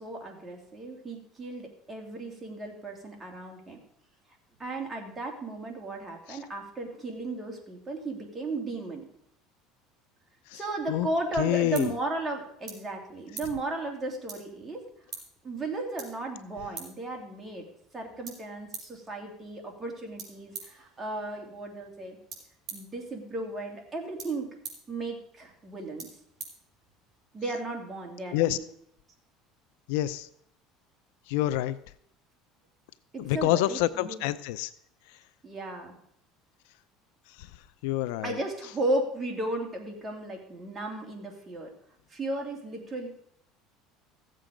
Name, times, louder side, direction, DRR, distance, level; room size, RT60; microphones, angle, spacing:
voice 1, 0.0-3.8 4.6-9.1 10.5-14.8 15.4-17.6 17.9-22.2 22.7-24.5 24.9-26.1 27.3-28.6 33.1-34.2 35.4-35.9 38.2-41.7 42.1-43.1, right 2 dB, 20° right, 1 dB, 2.8 m, -35 dB
sound 1, 11.0-27.3, right 5 dB, 40° right, 4.5 m, -48 dB
voice 2, 11.4-11.9 28.3-28.6 29.9-30.3 31.3-31.8 33.2-34.7 35.1-35.2 37.3-38.4, left 15 dB, 80° left, 15 dB, 0.5 m, -28 dB
15.5 x 7.7 x 5.1 m, 0.71 s
supercardioid pair, 120°, 0 cm